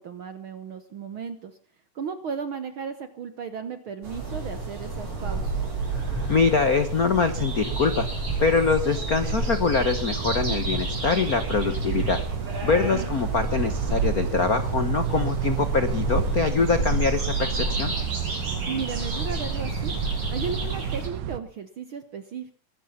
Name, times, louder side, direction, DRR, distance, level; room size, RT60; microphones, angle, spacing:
voice 1, 0.0-1.6 1.9-5.6 12.8-13.1 18.7-19.9 20.3-22.5, right 6 dB, 60° right, 10 dB, 1.4 m, -35 dB
sound 1, 4.0-21.1, right 3 dB, 45° right, 7.5 m, -29 dB
sound 2, 5.4-21.4, right 12 dB, 80° right, 2.5 m, -34 dB
voice 2, 6.3-8.1 8.4-12.2 12.6-17.9, left 5 dB, 60° left, 10 dB, 0.9 m, -24 dB
22.0 x 11.5 x 5.7 m, 0.43 s
omnidirectional pair, 3.6 m